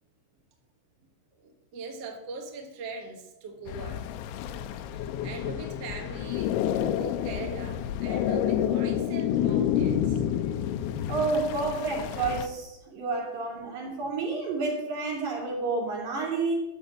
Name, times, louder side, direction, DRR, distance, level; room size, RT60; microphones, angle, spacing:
voice 1, 1.4-4.1 4.9-6.6 6.9-10.2, right 3 dB, 75° right, 2 dB, 1.4 m, -41 dB
sound 1, 3.7-12.5, left 10 dB, 85° left, 3.0 m, -29 dB
voice 2, 11.1-16.5, right 3 dB, 45° right, -2 dB, 4.0 m, -30 dB
12.0 x 6.6 x 7.3 m, 0.94 s
omnidirectional pair, 5.3 m